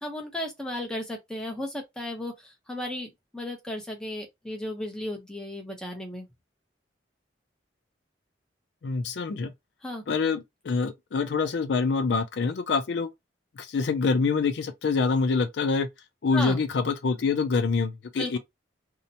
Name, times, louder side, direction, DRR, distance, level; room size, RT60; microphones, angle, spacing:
voice 1, 0.0-6.2 9.8-10.0 16.3-16.6 18.2-18.4, left 1 dB, 5° left, 0.7 m, -35 dB
voice 2, 8.8-9.5 10.1-13.1 13.6-15.9 16.2-18.4, left 4 dB, 65° left, 0.4 m, -26 dB
2.7 x 2.1 x 2.6 m
head